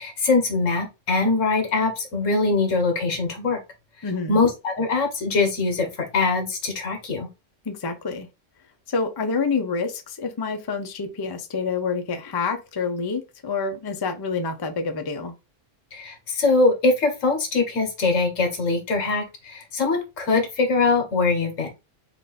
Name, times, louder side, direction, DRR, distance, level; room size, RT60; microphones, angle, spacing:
voice 1, 0.0-3.6 4.3-7.3 15.9-21.7, left 3 dB, 80° left, 1.6 m, -22 dB
voice 2, 4.0-4.4 7.7-8.3 8.9-15.3, left 4 dB, 35° left, 0.4 m, -27 dB
4.4 x 2.5 x 3.9 m
omnidirectional pair, 1.3 m